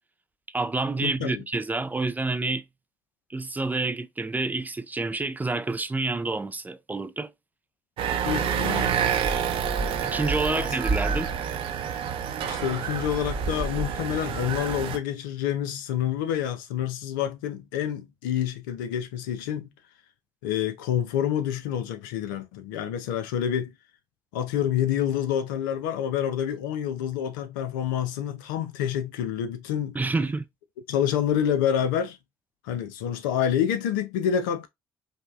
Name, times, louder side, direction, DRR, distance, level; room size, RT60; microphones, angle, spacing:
voice 1, 0.5-2.6 3.3-7.3 10.0-11.3 29.9-30.4, right 3 dB, 15° right, 0.4 m, -28 dB
voice 2, 1.0-1.4 8.3-8.9 10.6-10.7 12.4-19.7 20.4-23.7 24.3-30.0 30.9-32.2 32.6-34.7, left 9 dB, 75° left, 0.5 m, -28 dB
sound 1, 8.0-15.0, right 7 dB, 55° right, 0.6 m, -28 dB
5.1 x 2.1 x 2.4 m
figure-of-eight pair, 50°, 11 cm